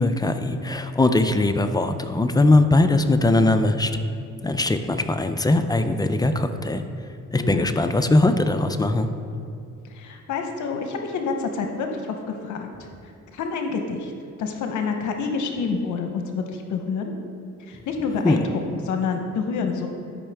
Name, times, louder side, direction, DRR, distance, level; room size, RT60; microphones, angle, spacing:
voice 1, 0.0-3.9 4.4-6.8 7.3-9.1 18.2-18.4, left 2 dB, 15° left, 8 dB, 0.4 m, -20 dB
voice 2, 7.4-7.7 9.8-12.9 13.3-14.1 14.4-17.1 17.7-19.9, left 5 dB, 75° left, 5 dB, 0.8 m, -28 dB
12.0 x 5.4 x 3.4 m, 2.5 s
cardioid pair, 90°, 30 cm